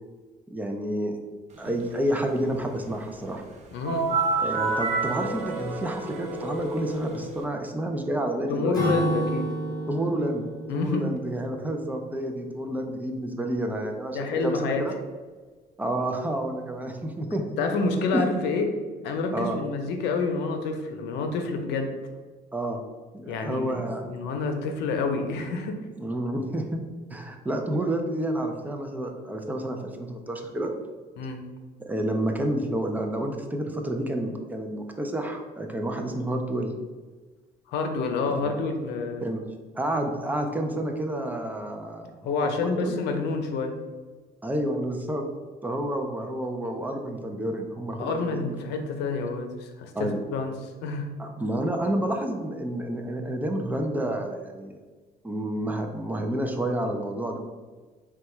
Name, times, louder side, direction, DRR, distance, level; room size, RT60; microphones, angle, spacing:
voice 1, 0.5-1.2 1.6-3.4 4.4-8.8 9.9-14.9 15.8-17.4 18.1-18.3 19.3-19.6 22.5-22.8 23.1-24.0 26.0-26.8 27.1-30.7 31.9-36.7 38.4-38.5 39.2-39.4 39.7-42.9 44.4-45.3 45.6-48.6 49.9-50.2 51.2-54.8 55.2-57.4, right 1 dB, 10° right, 3 dB, 0.5 m, -29 dB
voice 2, 3.7-4.1 8.5-9.5 10.7-11.1 14.1-14.8 17.6-18.7 19.0-21.9 23.3-25.8 31.2-31.4 37.7-39.2 42.2-43.7 48.0-51.1, left 3 dB, 85° left, 5 dB, 0.6 m, -28 dB
sound 1, 3.8-7.4, right 4 dB, 45° right, 0.8 m, -28 dB
Acoustic guitar / Strum, 8.7-12.4, right 1 dB, 20° left, 1.0 m, -31 dB
3.9 x 2.4 x 4.6 m, 1.4 s
cardioid pair, 110°, 17 cm